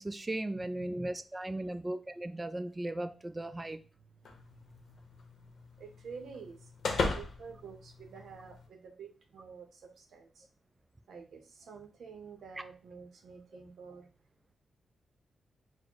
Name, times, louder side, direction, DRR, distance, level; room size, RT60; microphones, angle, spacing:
voice 1, 0.0-3.8, right 1 dB, 15° right, 0.3 m, -37 dB
voice 2, 0.5-1.0 1.6-1.8 5.8-10.5 11.1-14.1, right 5 dB, 80° right, 0.6 m, -49 dB
sound 1, 4.3-8.7, left 3 dB, 65° left, 0.7 m, -38 dB
4.1 x 2.0 x 4.5 m
wide cardioid pair, 150°, 0 cm